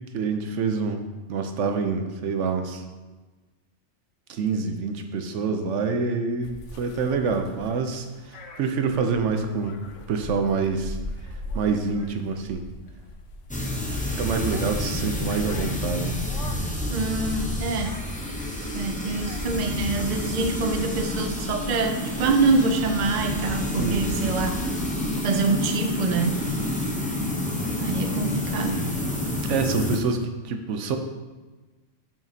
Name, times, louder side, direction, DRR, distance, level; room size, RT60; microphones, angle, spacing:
voice 1, 0.1-1.0 1.3-2.8 4.3-9.8 10.1-11.0 11.5-12.6 14.2-16.2 23.8-24.4 29.5-31.0, right 5 dB, 75° right, 6 dB, 1.0 m, -26 dB
sound 1, 6.4-21.6, left 1 dB, 75° left, 1.1 m, -41 dB
sound 2, 13.5-30.0, left 1 dB, 10° left, 0.5 m, -29 dB
voice 2, 16.9-18.0 18.7-24.6 25.2-26.4 27.8-28.9, right 3 dB, 45° right, 5 dB, 0.6 m, -25 dB
9.1 x 5.7 x 2.8 m, 1.3 s
omnidirectional pair, 1.3 m